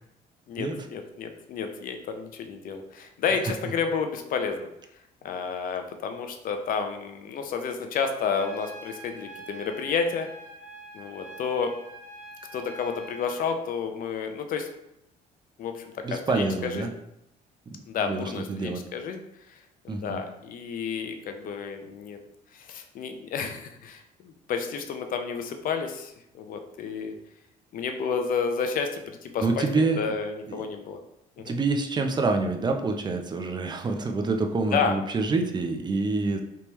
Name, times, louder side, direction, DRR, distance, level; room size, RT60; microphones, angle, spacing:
voice 1, 0.5-4.7 5.2-10.3 10.9-11.7 12.5-14.7 15.6-15.8 16.1-16.9 17.9-19.2 19.5-19.6 19.8-22.2 22.5-27.1 27.7-31.0 31.4-31.6 34.6-35.0, left 6 dB, 55° left, 6 dB, 0.5 m, -31 dB
Trumpet, 8.3-13.5, right 1 dB, 50° right, 0.9 m, -45 dB
voice 2, 16.0-16.9 17.7-18.8 19.9-20.2 29.4-30.0 30.5-30.6 31.5-36.4, right 3 dB, 25° right, 4 dB, 0.5 m, -27 dB
3.4 x 3.0 x 3.0 m, 0.82 s
cardioid pair, 110°, 17 cm